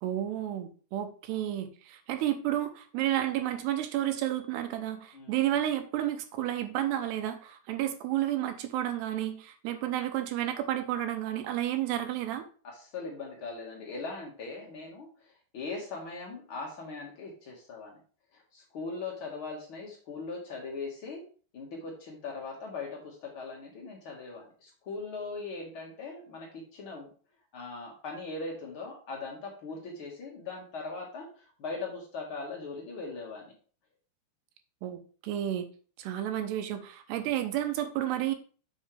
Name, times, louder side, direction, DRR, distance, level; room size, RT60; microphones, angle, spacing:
voice 1, 0.0-12.4 34.8-35.7 36.0-38.3, right 12 dB, 85° right, 7 dB, 2.8 m, -31 dB
voice 2, 12.6-18.0 18.3-21.2 21.5-27.1 27.5-33.5 37.1-37.4, left 3 dB, 80° left, -1 dB, 1.1 m, -40 dB
7.3 x 6.4 x 3.3 m, 0.40 s
omnidirectional pair, 4.9 m